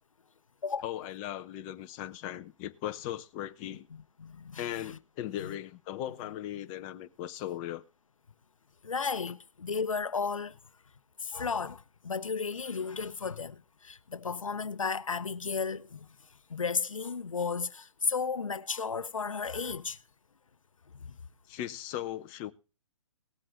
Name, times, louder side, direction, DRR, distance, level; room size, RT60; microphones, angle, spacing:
voice 1, 0.8-3.9 4.6-7.8 21.5-22.5, left 12 dB, 25° left, 0.9 m, -38 dB
voice 2, 3.9-5.0 5.4-5.5 8.8-10.6 11.2-16.1 16.5-20.0 21.0-21.1, left 5 dB, 90° left, 0.8 m, -34 dB
18.5 x 7.7 x 3.7 m
hypercardioid pair, 145°, 17 cm